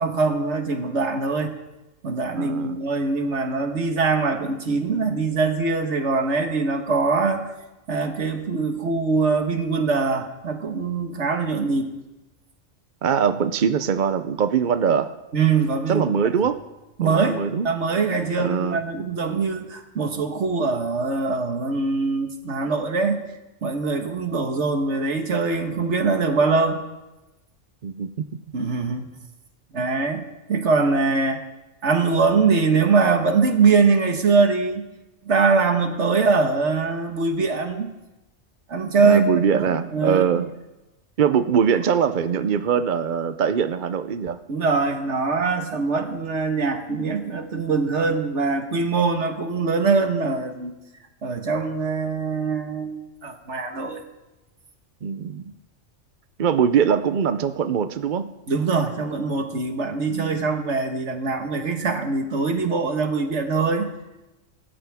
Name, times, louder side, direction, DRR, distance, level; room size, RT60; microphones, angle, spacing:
voice 1, 0.0-1.6 2.0-7.4 7.9-11.9 15.3-16.0 17.0-23.2 23.6-26.8 28.5-29.2 29.7-31.4 31.8-34.9 35.3-37.9 38.7-39.3 39.5-40.4 44.5-50.7 51.2-54.0 58.5-63.9, right 4 dB, 65° right, 5 dB, 1.8 m, -22 dB
voice 2, 2.4-2.8 13.0-15.1 15.9-16.6 17.0-17.7 18.4-18.8 27.8-28.3 39.0-40.5 41.2-44.4 55.0-55.4 56.4-58.3 60.1-60.5, right 7 dB, 50° right, 10 dB, 0.7 m, -22 dB
25.5 x 14.0 x 3.5 m, 1.0 s
omnidirectional pair, 1.3 m